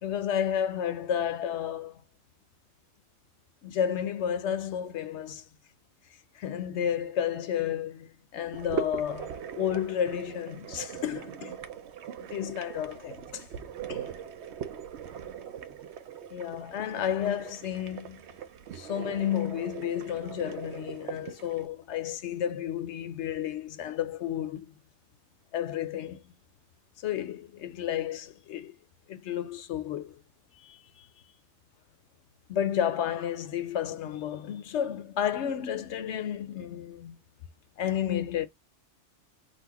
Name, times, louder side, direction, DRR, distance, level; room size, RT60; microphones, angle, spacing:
voice 1, 0.0-2.0 3.6-5.5 6.3-11.6 12.3-13.5 13.9-14.1 16.3-18.2 18.7-24.7 25.5-26.2 27.0-28.8 29.1-30.2 30.6-31.1 32.5-37.2 37.8-38.5, left 9 dB, 65° left, 0.9 m, -32 dB
sound 1, 8.5-21.6, right 8 dB, 65° right, 0.8 m, -40 dB
4.1 x 2.5 x 4.5 m
omnidirectional pair, 1.3 m